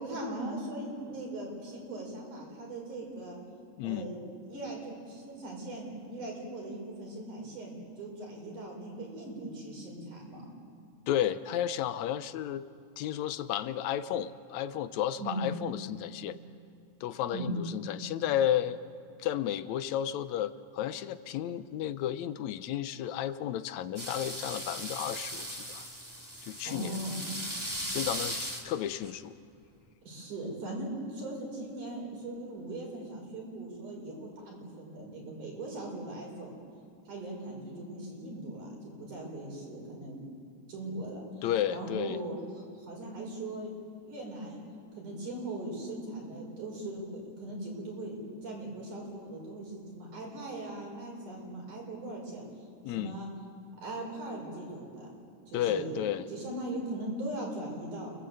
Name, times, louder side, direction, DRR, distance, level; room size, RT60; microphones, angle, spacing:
voice 1, 0.0-3.4 3.8-4.2 4.5-10.5 15.2-15.5 17.3-17.6 26.7-27.2 30.1-36.5 37.1-40.2 40.7-42.4 42.8-43.7 44.0-44.6 44.9-52.5 52.9-53.3 53.8-55.1 55.5-56.0 56.3-58.1, right 1 dB, 70° right, -1 dB, 7.1 m, -39 dB
voice 2, 11.1-12.6 13.0-16.4 17.0-18.8 19.2-25.9 26.5-27.0 27.9-29.3 41.4-42.2 52.8-53.2 55.5-56.2, left 11 dB, 75° left, 13 dB, 1.9 m, -32 dB
sound 1, 24.0-29.1, right 1 dB, 5° right, 1.7 m, -38 dB
29.5 x 21.0 x 8.0 m, 2.5 s
omnidirectional pair, 3.6 m